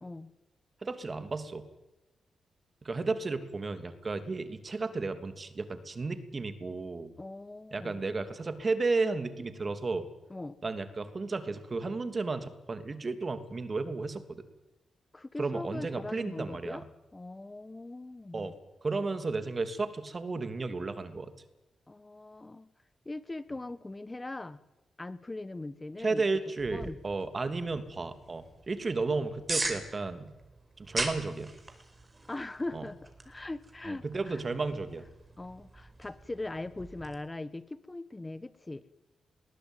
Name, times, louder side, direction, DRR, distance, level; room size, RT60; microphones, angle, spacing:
voice 1, 0.0-0.3 7.2-8.0 10.3-10.6 15.1-16.8 17.1-18.5 21.9-22.7 23.0-24.6 25.0-26.2 26.7-27.0 32.3-34.4 35.4-38.8, left 2 dB, 25° left, 15 dB, 1.3 m, -40 dB
voice 2, 0.8-1.7 2.8-7.1 7.7-10.1 10.6-14.4 15.4-16.8 18.3-18.5 18.8-21.3 26.0-30.3 30.8-31.5 32.7-32.8 33.9-35.0, right 3 dB, 45° right, 9 dB, 2.9 m, -33 dB
sound 1, 26.6-37.2, right 2 dB, 25° right, 5.0 m, -41 dB
21.0 x 18.5 x 9.2 m, 1.0 s
supercardioid pair, 50°, 0 cm